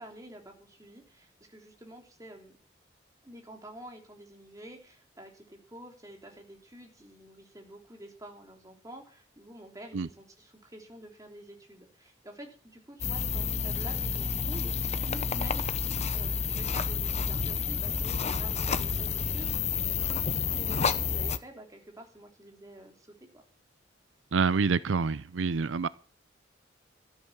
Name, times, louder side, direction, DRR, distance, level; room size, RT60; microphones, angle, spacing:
voice 1, 0.0-2.6 3.2-23.4, right 1 dB, 20° right, 3.2 m, -49 dB
sound 1, 13.0-21.4, left 5 dB, 35° left, 0.8 m, -30 dB
voice 2, 24.3-25.9, right 5 dB, 90° right, 0.5 m, -27 dB
13.5 x 9.0 x 7.3 m
head